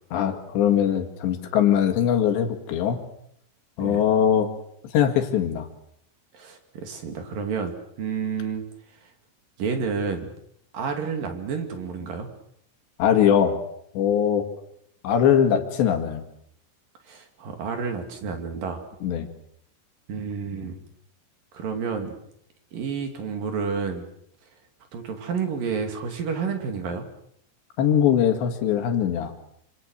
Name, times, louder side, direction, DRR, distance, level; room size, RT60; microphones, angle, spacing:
voice 1, 0.1-3.0 3.8-4.5 4.9-5.7 13.0-13.6 14.0-14.5 15.0-16.2 19.0-19.3 27.8-29.3, left 9 dB, 65° left, 6 dB, 3.9 m, -21 dB
voice 2, 6.3-8.6 9.6-10.3 10.7-12.3 17.1-18.8 20.1-20.8 21.5-22.1 22.7-24.1 24.9-27.1, right 5 dB, 50° right, 5 dB, 3.7 m, -30 dB
26.5 x 26.0 x 6.5 m, 0.72 s
omnidirectional pair, 5.9 m